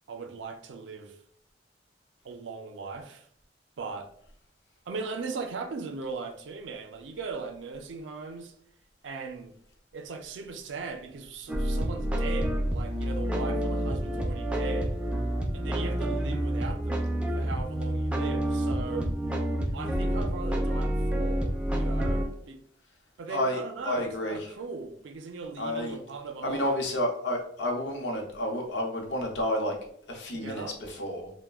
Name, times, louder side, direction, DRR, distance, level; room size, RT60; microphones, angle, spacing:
voice 1, 0.1-1.2 2.2-3.3 3.8-4.1 4.9-8.5 9.0-9.6 9.9-15.0 15.5-19.1 19.7-22.6 23.2-26.7 30.3-30.8, right 4 dB, 85° right, 0.4 m, -39 dB
sound 1, 11.5-22.3, right 1 dB, 5° right, 0.3 m, -28 dB
voice 2, 23.3-24.4 25.6-26.0 26.4-29.8 30.1-31.3, left 1 dB, 75° left, 0.7 m, -30 dB
2.3 x 2.1 x 3.4 m
head